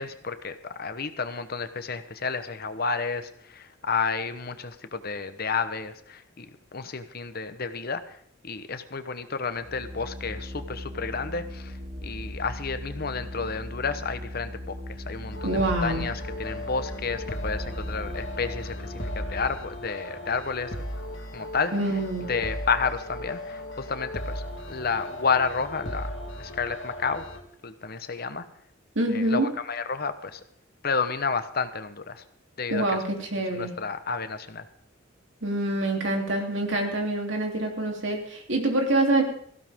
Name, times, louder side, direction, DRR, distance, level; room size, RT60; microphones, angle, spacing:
voice 1, 0.0-6.5 6.7-8.2 8.4-20.8 21.3-21.7 22.3-24.4 24.7-26.1 26.4-27.2 27.6-28.4 29.1-30.4 30.8-32.2 32.6-32.8 33.5-34.6, left 5 dB, 50° left, 10 dB, 1.0 m, -31 dB
Organ, 9.5-19.8, left 1 dB, 40° right, 3.4 m, -38 dB
sound 1, 15.3-27.4, left 1 dB, 80° left, 2.4 m, -37 dB
voice 2, 15.4-16.1 21.7-22.3 28.9-29.5 32.7-33.7 35.4-39.2, right 2 dB, 65° right, 1 dB, 3.2 m, -26 dB
18.0 x 15.0 x 3.7 m, 0.63 s
head